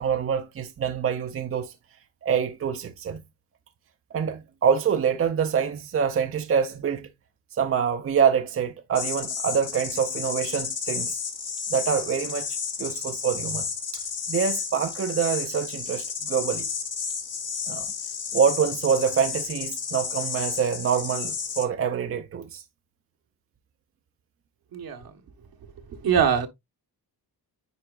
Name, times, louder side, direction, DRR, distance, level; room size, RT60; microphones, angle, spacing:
voice 1, 0.0-1.7 2.2-3.2 4.1-7.1 7.5-11.2 11.7-12.5 12.8-13.7 13.9-16.7 17.7-17.9 18.3-22.6, right 7 dB, 35° right, 0.6 m, -25 dB
sound 1, 8.9-21.6, left 6 dB, 50° left, 1.7 m, -32 dB
voice 2, 24.7-25.1 25.9-26.5, right 7 dB, 65° right, 1.3 m, -23 dB
10.0 x 4.2 x 2.4 m
wide cardioid pair, 145°, 39 cm